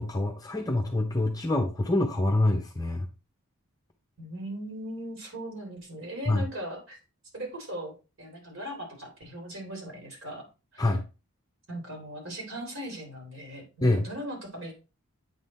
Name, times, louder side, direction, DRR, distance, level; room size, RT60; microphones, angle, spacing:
voice 1, 0.0-3.1 6.3-6.5 10.8-11.0 13.8-14.0, left 2 dB, 15° left, 3 dB, 0.6 m, -26 dB
voice 2, 4.2-7.0 7.3-10.5 10.7-11.0 11.7-14.7, equal, 65° right, 1 dB, 2.9 m, -39 dB
8.2 x 3.8 x 4.1 m, 0.30 s
head